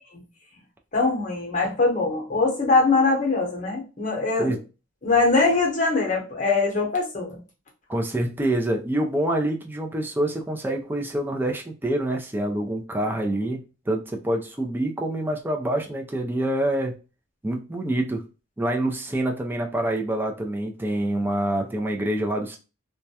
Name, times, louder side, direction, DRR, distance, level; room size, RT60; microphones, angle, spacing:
voice 1, 0.9-4.6 5.0-7.4, left 3 dB, 40° left, -1 dB, 0.8 m, -22 dB
voice 2, 7.9-17.0 17.4-18.2 18.6-22.6, right 1 dB, 10° right, 2 dB, 0.3 m, -26 dB
2.2 x 2.1 x 2.7 m, 0.32 s
head